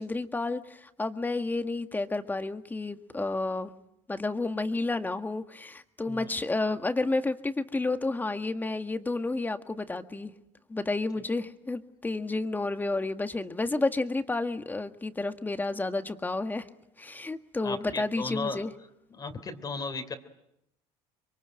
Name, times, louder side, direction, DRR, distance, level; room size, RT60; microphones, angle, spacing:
voice 1, 0.0-3.7 4.1-10.3 10.7-16.6 17.0-18.7, left 2 dB, 15° left, 8 dB, 1.8 m, -31 dB
voice 2, 17.6-18.6 19.1-20.1, left 4 dB, 30° left, 8 dB, 3.3 m, -35 dB
26.5 x 23.0 x 9.2 m, 0.80 s
supercardioid pair, 105°, 13 cm